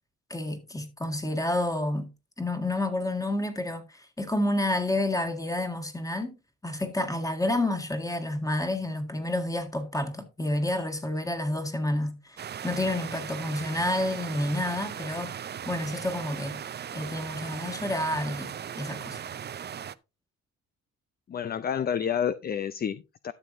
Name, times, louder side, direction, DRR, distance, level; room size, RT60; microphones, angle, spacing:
voice 1, 0.3-2.1 2.4-6.4 6.6-15.3 15.7-16.6 16.9-19.2, left 1 dB, 10° left, 1.8 m, -29 dB
sound 1, 12.4-19.9, right 8 dB, 35° right, 0.5 m, -38 dB
voice 2, 21.3-23.3, left 8 dB, 30° left, 0.4 m, -29 dB
12.5 x 6.8 x 2.6 m
cardioid pair, 90°, 30 cm